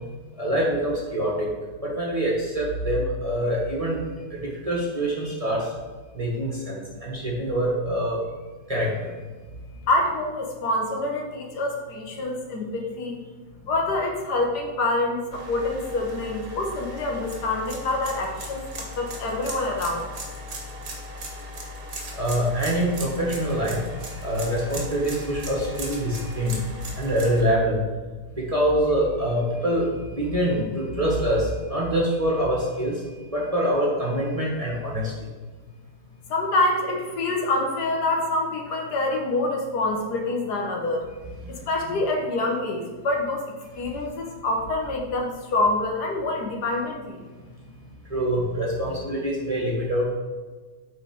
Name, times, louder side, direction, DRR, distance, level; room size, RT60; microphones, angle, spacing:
voice 1, 0.4-1.5 1.8-4.0 4.4-5.6 6.1-8.2 8.7-9.1 22.2-23.8 24.2-26.5 27.0-27.8 28.4-32.9 33.3-35.1 48.1-50.1, equal, 20° right, -4 dB, 1.4 m, -25 dB
voice 2, 9.9-13.2 13.6-20.1 36.3-41.0 41.5-47.2, left 2 dB, 75° left, 1 dB, 1.6 m, -26 dB
sound 1, 15.3-27.4, equal, 70° right, 1.8 m, -37 dB
8.0 x 3.8 x 5.2 m, 1.4 s
omnidirectional pair, 1.8 m